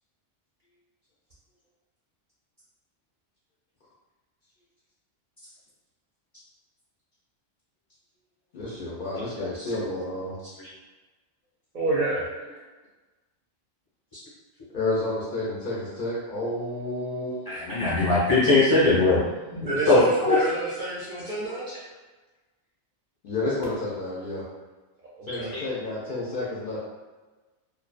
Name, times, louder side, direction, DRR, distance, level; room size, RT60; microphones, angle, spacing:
voice 1, 8.5-10.4 14.7-17.4 23.2-24.4 25.3-26.8, left 2 dB, 60° left, -7 dB, 0.6 m, -30 dB
voice 2, 11.7-12.2 19.5-21.7 25.2-25.6, right 2 dB, 55° right, -8 dB, 0.6 m, -28 dB
voice 3, 17.5-19.2 19.8-20.3 25.5-25.6, left 2 dB, 20° left, -9 dB, 0.7 m, -20 dB
2.5 x 2.2 x 2.3 m, 1.2 s
omnidirectional pair, 1.2 m